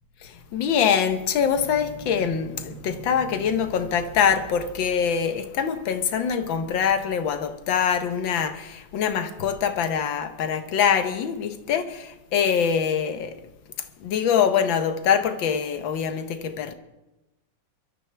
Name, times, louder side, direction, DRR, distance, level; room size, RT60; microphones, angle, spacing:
voice 1, 0.2-13.4 14.0-16.7, left 7 dB, 75° left, 1.7 m, -24 dB
sound 1, 1.5-5.0, right 8 dB, 75° right, 1.7 m, -44 dB
23.0 x 12.5 x 3.4 m
omnidirectional pair, 2.2 m